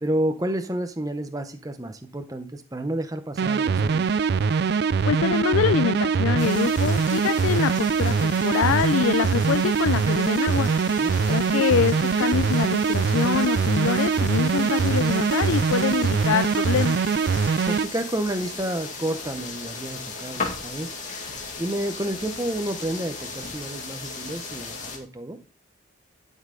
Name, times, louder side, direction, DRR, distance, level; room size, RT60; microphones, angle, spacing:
voice 1, 0.0-4.0 11.0-11.1 17.7-20.9 21.6-25.4, right 1 dB, 15° right, 8 dB, 0.6 m, -30 dB
sound 1, 3.4-17.9, right 5 dB, 55° right, 0.3 m, -23 dB
voice 2, 5.1-10.7 11.3-17.0, left 7 dB, 85° left, 12 dB, 0.3 m, -25 dB
sound 2, 6.4-25.0, left 4 dB, 40° left, 2.1 m, -37 dB
11.5 x 5.5 x 3.7 m, 0.36 s
head